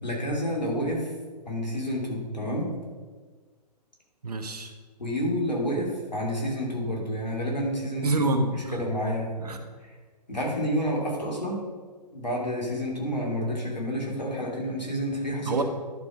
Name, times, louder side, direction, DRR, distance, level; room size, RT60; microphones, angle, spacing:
voice 1, 0.0-1.1 1.5-2.7 5.0-8.1 8.5-9.6 9.8-9.9 10.3-11.6 12.1-15.6, equal, 85° left, -2 dB, 2.8 m, -29 dB
voice 2, 4.2-4.7 8.0-8.8 9.4-9.6 15.5-15.6, right 2 dB, 65° right, 6 dB, 1.2 m, -26 dB
11.0 x 4.8 x 5.0 m, 1.5 s
figure-of-eight pair, 125°, 21 cm